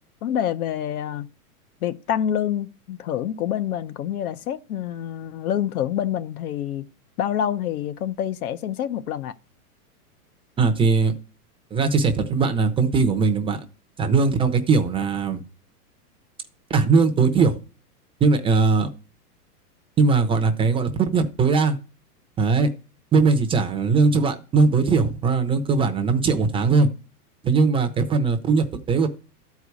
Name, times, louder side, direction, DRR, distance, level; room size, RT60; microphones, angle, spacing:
voice 1, 0.2-1.3 1.8-6.8 7.2-9.4, left 10 dB, 65° left, 1.0 m, -27 dB
voice 2, 10.6-11.1 11.7-13.6 14.0-15.4 16.7-17.6 18.2-18.9 20.0-21.8 22.4-22.7 23.1-26.9 27.4-29.1, right 4 dB, 10° right, 0.6 m, -20 dB
12.5 x 4.8 x 8.2 m
hypercardioid pair, 140°, 46 cm